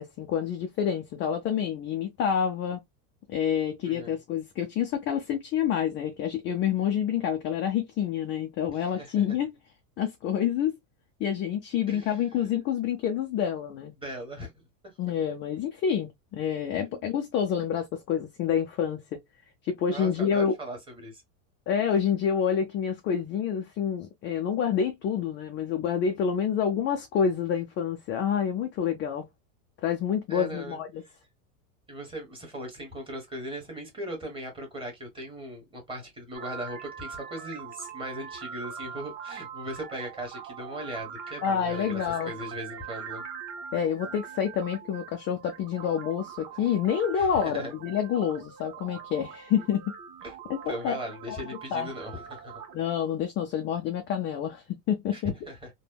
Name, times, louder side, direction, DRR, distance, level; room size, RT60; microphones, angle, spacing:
voice 1, 0.0-2.8 3.3-9.5 10.0-10.8 11.2-13.9 15.0-19.2 19.6-20.5 21.7-29.3 29.8-31.0 41.4-42.3 43.7-49.9 50.5-51.0 51.3-51.4 51.7-51.9 52.7-55.3, left 8 dB, 25° left, 0.4 m, -28 dB
voice 2, 8.7-9.1 11.9-12.4 14.0-14.6 16.9-17.1 19.9-21.2 30.3-30.8 31.9-43.2 47.1-47.7 50.2-50.3 50.7-52.6 55.1-55.7, right 1 dB, 10° right, 1.4 m, -39 dB
sound 1, 36.3-53.1, right 7 dB, 65° right, 1.2 m, -43 dB
3.4 x 2.2 x 2.2 m
supercardioid pair, 125°, 46 cm